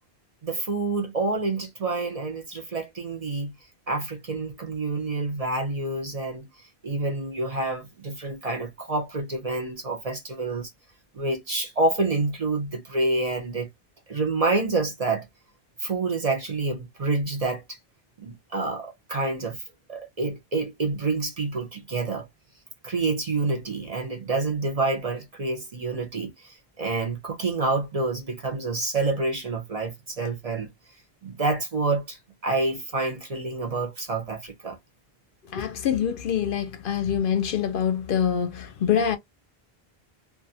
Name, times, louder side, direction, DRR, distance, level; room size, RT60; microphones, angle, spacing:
voice 1, 0.4-3.5 3.9-6.5 6.8-10.7 11.1-13.7 14.1-15.3 15.8-17.8 18.2-19.6 19.9-22.3 22.8-30.7 31.2-34.8, right 3 dB, 45° right, 0.6 m, -28 dB
voice 2, 35.5-39.2, left 8 dB, 65° left, 0.7 m, -25 dB
2.4 x 2.2 x 2.7 m
omnidirectional pair, 1.0 m